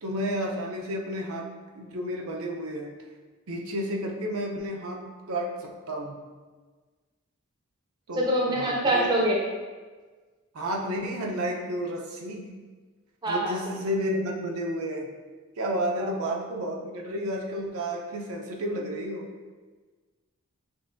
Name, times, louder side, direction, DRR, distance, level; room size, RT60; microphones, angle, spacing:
voice 1, 0.0-1.5 1.7-2.9 3.5-6.2 8.1-9.1 10.5-12.5 13.2-15.1 15.6-19.3, equal, 80° right, 0 dB, 0.6 m, -31 dB
voice 2, 8.1-9.4 13.2-13.6, right 1 dB, 20° right, -3 dB, 0.6 m, -24 dB
6.2 x 2.6 x 2.5 m, 1.4 s
head